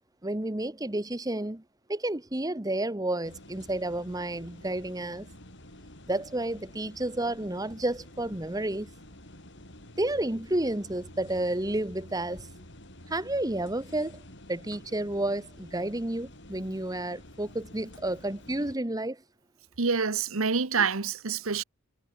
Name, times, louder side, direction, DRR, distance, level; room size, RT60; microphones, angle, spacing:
voice 1, 0.2-1.6 1.9-5.3 6.1-8.9 10.0-12.5 13.1-14.2 14.5-19.2, right 1 dB, 15° right, 1.1 m, -31 dB
sound 1, 3.2-18.7, left 1 dB, 55° left, 7.8 m, -49 dB
voice 2, 19.8-21.6, right 5 dB, 70° right, 1.2 m, -27 dB
head